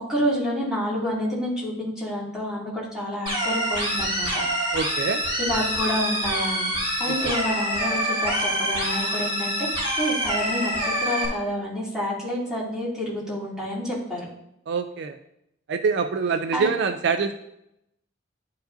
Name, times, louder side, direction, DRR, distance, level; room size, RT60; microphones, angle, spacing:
voice 1, 0.1-4.4 5.4-9.7 10.0-14.3 16.5-16.7, equal, 5° right, -8 dB, 2.4 m, -28 dB
sound 1, 3.3-11.3, equal, 30° right, 2.1 m, -26 dB
voice 2, 4.7-5.2 7.1-7.2 14.7-15.2 15.7-17.3, right 5 dB, 65° right, 8 dB, 0.4 m, -25 dB
sound 2, 5.7-9.9, left 3 dB, 85° left, 0.7 m, -40 dB
11.0 x 4.7 x 2.6 m, 0.81 s
head